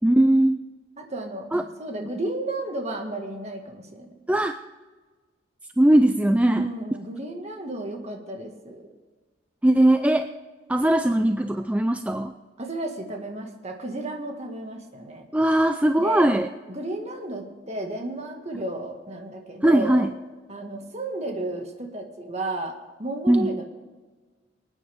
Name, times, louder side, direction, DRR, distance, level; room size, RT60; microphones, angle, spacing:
voice 1, 0.0-0.6 1.5-1.6 4.3-4.6 5.8-6.7 9.6-10.3 10.7-12.3 15.3-16.5 19.6-20.1 23.3-23.5, right 1 dB, 5° right, 7 dB, 0.4 m, -19 dB
voice 2, 1.0-4.1 6.4-8.8 12.6-15.3 16.0-16.3 16.7-20.1 20.5-23.6, right 2 dB, 35° right, 2 dB, 1.8 m, -33 dB
24.5 x 9.4 x 3.6 m, 1.4 s
head